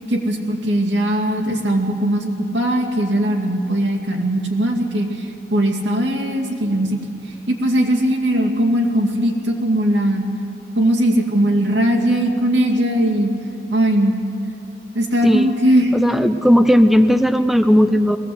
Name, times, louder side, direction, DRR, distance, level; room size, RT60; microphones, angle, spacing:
voice 1, 0.1-7.0 7.5-10.2 10.8-13.3 13.7-14.2 14.9-15.9, right 1 dB, 85° right, 1 dB, 2.4 m, -19 dB
voice 2, 15.9-18.2, equal, ahead, 9 dB, 0.4 m, -15 dB
20.5 x 17.0 x 7.9 m, 2.9 s
head